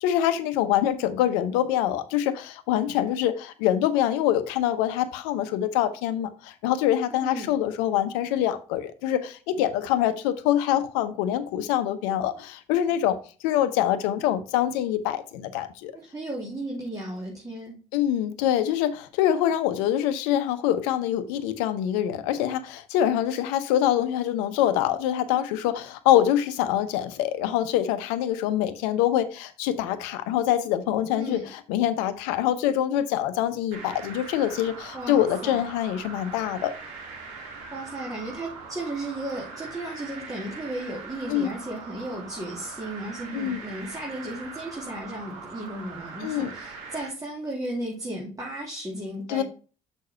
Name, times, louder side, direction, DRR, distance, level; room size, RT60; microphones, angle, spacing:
voice 1, 0.0-13.2 13.4-15.9 17.9-36.7 41.3-41.5 43.3-43.6 46.2-46.5 49.3-49.4, left 11 dB, 80° left, 0.8 m, -25 dB
voice 2, 7.1-7.5 15.9-17.8 31.2-31.5 34.9-35.7 37.7-49.4, right 1 dB, 20° right, 2.8 m, -35 dB
sound 1, 33.7-47.1, right 4 dB, 80° right, 2.0 m, -41 dB
6.6 x 5.3 x 5.5 m
hypercardioid pair, 50°, 18 cm